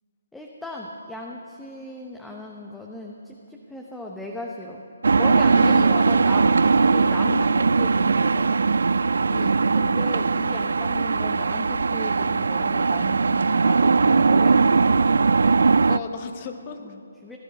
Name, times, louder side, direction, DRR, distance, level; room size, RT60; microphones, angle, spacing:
voice 1, 0.3-4.8 5.2-8.6 9.8-15.3 16.8-17.4, left 1 dB, 5° left, -1 dB, 0.9 m, -37 dB
sound 1, 5.0-16.0, right 4 dB, 65° right, 0.3 m, -19 dB
voice 2, 5.5-6.2 9.3-9.7 15.9-16.9, left 5 dB, 30° left, 6 dB, 1.3 m, -33 dB
17.5 x 11.0 x 6.4 m, 2.5 s
figure-of-eight pair, 145°, 0 cm